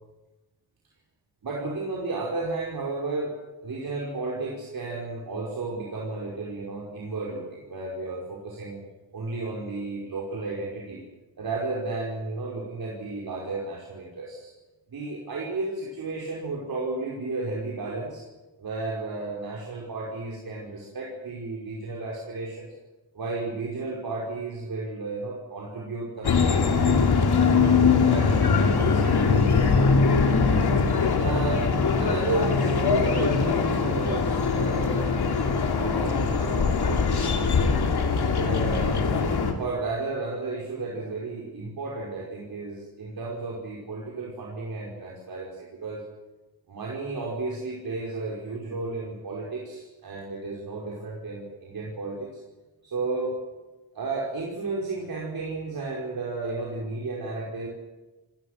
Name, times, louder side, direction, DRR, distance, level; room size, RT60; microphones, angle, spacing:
voice 1, 1.4-8.9 9.1-11.0 11.4-14.5 14.9-18.2 18.6-22.7 23.1-27.1 27.5-29.8 31.1-31.7 32.0-35.2 35.7-37.8 38.4-46.0 46.7-52.3 52.8-53.4 53.9-57.7, right 3 dB, 65° right, -3 dB, 5.3 m, -33 dB
sound 1, 26.2-39.5, left 5 dB, 80° left, 3.1 m, -22 dB
28.0 x 20.5 x 6.7 m, 1.1 s
wide cardioid pair, 130°, 38 cm